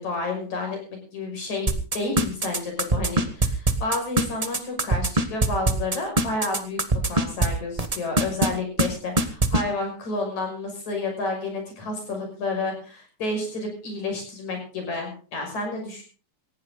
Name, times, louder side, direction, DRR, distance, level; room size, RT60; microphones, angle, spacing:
voice 1, 0.0-6.8 7.1-16.0, left 2 dB, 70° left, 3 dB, 7.4 m, -30 dB
sound 1, 1.7-7.5 7.8-8.5 8.8-8.9 9.2-9.6, right 2 dB, 60° right, 0.3 m, -21 dB
18.5 x 16.0 x 3.9 m, 0.37 s
omnidirectional pair, 3.4 m